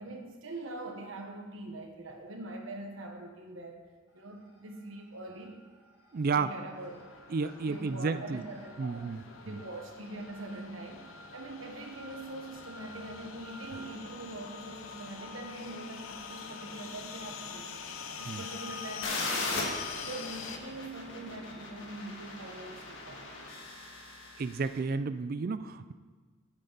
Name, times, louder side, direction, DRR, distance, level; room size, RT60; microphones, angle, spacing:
voice 1, 0.0-3.8 4.1-5.6 6.3-7.0 7.7-17.7 18.2-19.7 19.9-23.2, right 2 dB, 70° right, 3 dB, 1.3 m, -43 dB
sound 1, 4.1-4.8 5.1-21.7, left 2 dB, 15° right, 2.3 m, -51 dB
voice 2, 6.1-6.5 7.3-8.4 8.8-9.6 18.3-18.4 24.4-25.9, right 4 dB, 45° right, 12 dB, 0.4 m, -32 dB
sound 2, 6.8-20.6, left 6 dB, 80° left, 0.8 m, -45 dB
sound 3, 19.0-24.7, left 3 dB, 65° left, 1.8 m, -38 dB
11.0 x 8.8 x 4.1 m, 1.4 s
head